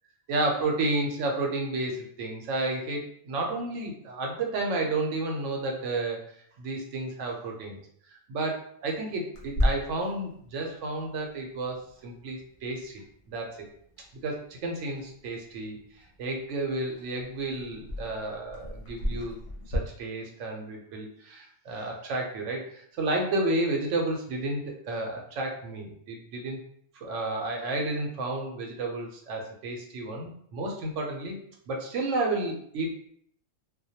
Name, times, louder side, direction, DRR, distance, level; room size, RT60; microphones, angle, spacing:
voice 1, 0.3-6.2 6.6-7.8 8.3-13.0 13.3-13.6 14.2-15.8 16.2-19.4 19.7-26.6 26.9-31.4 31.7-33.0, right 2 dB, 80° right, 1 dB, 0.9 m, -31 dB
Clock, 9.3-19.8, equal, 50° left, 0.7 m, -36 dB
2.2 x 2.1 x 2.7 m, 0.64 s
omnidirectional pair, 1.2 m